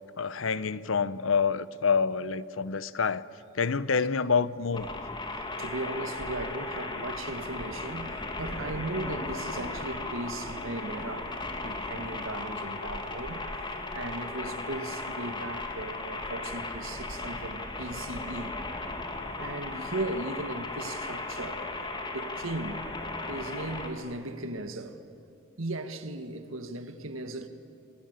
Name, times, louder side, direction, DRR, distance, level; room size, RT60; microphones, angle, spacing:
voice 1, 0.2-3.2 3.5-4.9, left 5 dB, 80° left, 0.8 m, -27 dB
sound 1, 4.7-23.9, left 2 dB, 25° left, 2.3 m, -36 dB
voice 2, 5.3-18.5 19.4-21.7 22.1-22.9 23.3-25.0 25.6-27.5, right 2 dB, 85° right, 1.8 m, -37 dB
28.0 x 26.0 x 8.2 m
head